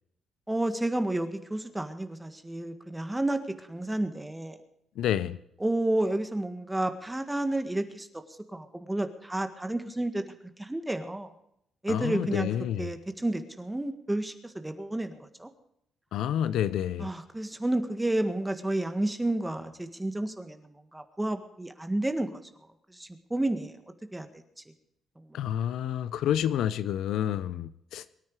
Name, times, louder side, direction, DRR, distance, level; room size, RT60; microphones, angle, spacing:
voice 1, 0.5-3.4 3.7-4.6 5.6-8.1 8.5-10.2 10.6-11.3 11.8-12.5 12.8-15.5 17.0-22.4 22.9-23.7 24.1-24.4, right 1 dB, 10° right, 1.7 m, -31 dB
voice 2, 5.0-5.4 11.9-12.9 16.1-17.1 25.3-28.0, left 10 dB, 80° left, 0.7 m, -29 dB
23.5 x 9.6 x 4.8 m
cardioid pair, 90°, 0 cm